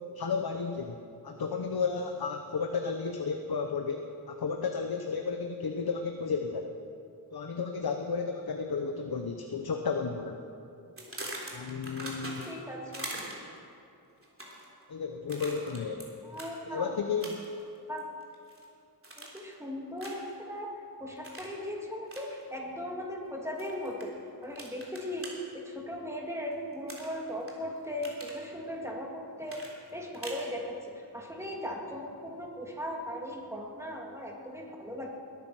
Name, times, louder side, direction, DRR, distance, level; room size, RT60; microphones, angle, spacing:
voice 1, 0.0-6.8 7.3-10.4 11.5-12.5 14.9-16.1 16.7-17.4, left 5 dB, 65° left, 5 dB, 0.9 m, -33 dB
sound 1, 11.0-12.6 12.9-13.6 14.2-14.7 15.3-16.1 16.3-16.5 17.2-17.6 18.0-18.6 19.0-19.5 20.0-20.3 21.2-21.5 22.1-22.3 23.6-24.0 24.6-25.3 26.9-27.5 27.8-28.4 29.5-30.5, right 1 dB, 35° right, 3.3 m, -42 dB
voice 2, 12.5-13.1 16.2-17.0 17.9-18.1 19.2-24.2 24.4-35.1, equal, 5° right, -1 dB, 2.4 m, -38 dB
20.5 x 9.5 x 6.2 m, 2.6 s
wide cardioid pair, 70°, 39 cm